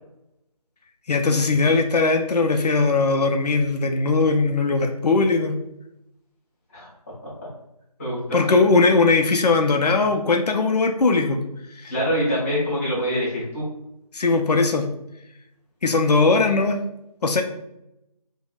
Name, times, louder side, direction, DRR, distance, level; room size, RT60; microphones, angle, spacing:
voice 1, 1.1-5.6 8.3-11.4 11.8-11.9 14.1-14.9 15.8-16.8 17.2-17.4, left 3 dB, 85° left, 4 dB, 0.4 m, -19 dB
voice 2, 8.0-8.5 11.9-13.6, equal, 20° left, -9 dB, 1.0 m, -25 dB
3.4 x 2.1 x 2.3 m, 0.84 s
figure-of-eight pair, 165°, 20 cm